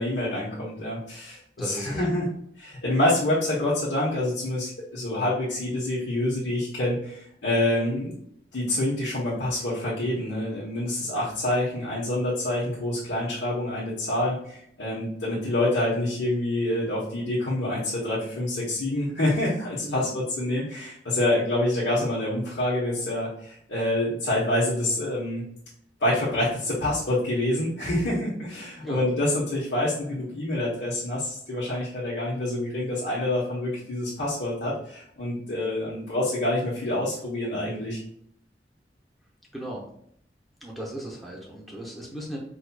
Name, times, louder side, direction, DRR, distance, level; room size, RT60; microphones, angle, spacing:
voice 1, 0.0-1.4 1.6-2.3 2.6-8.1 8.5-25.4 26.0-38.0, left 1 dB, 85° left, -8 dB, 1.0 m, -27 dB
voice 2, 1.6-2.1 19.8-20.2 28.8-29.1 39.5-39.9 40.6-42.4, right 1 dB, ahead, -3 dB, 0.7 m, -36 dB
4.6 x 2.8 x 2.2 m, 0.69 s
head